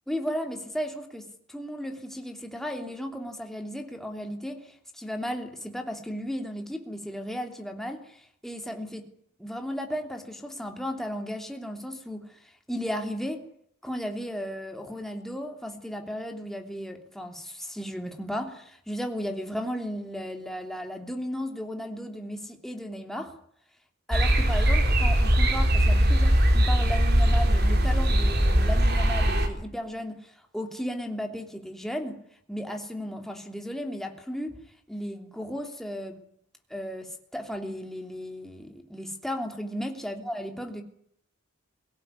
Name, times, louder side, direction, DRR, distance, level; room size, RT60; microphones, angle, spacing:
voice 1, 0.1-9.1 9.4-13.5 13.8-23.3 24.1-32.2 32.5-34.6 34.9-36.2 36.7-40.8, equal, ahead, 3 dB, 3.0 m, -35 dB
sound 1, 24.1-29.5, right 1 dB, 50° right, 3.8 m, -21 dB
23.5 x 17.5 x 9.7 m, 0.66 s
head